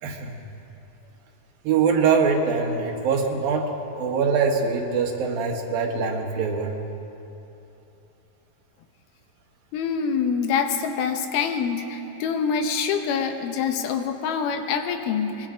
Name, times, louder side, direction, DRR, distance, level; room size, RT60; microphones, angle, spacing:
voice 1, 0.0-0.4 1.6-3.7 4.0-6.7, right 5 dB, 75° right, 2 dB, 3.3 m, -23 dB
voice 2, 9.7-15.5, left 6 dB, 85° left, 6 dB, 3.1 m, -25 dB
23.5 x 21.5 x 5.1 m, 2.9 s
omnidirectional pair, 4.3 m